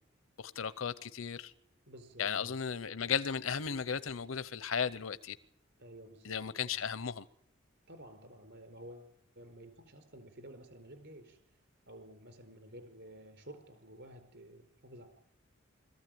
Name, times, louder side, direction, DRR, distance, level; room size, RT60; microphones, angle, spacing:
voice 1, 0.4-1.5 2.2-5.3 6.2-7.2, left 7 dB, 80° left, 16 dB, 0.7 m, -35 dB
voice 2, 1.9-2.6 5.8-6.8 7.9-11.4 11.9-15.0, right 1 dB, 60° right, 8 dB, 4.8 m, -52 dB
21.5 x 15.0 x 9.3 m, 0.73 s
head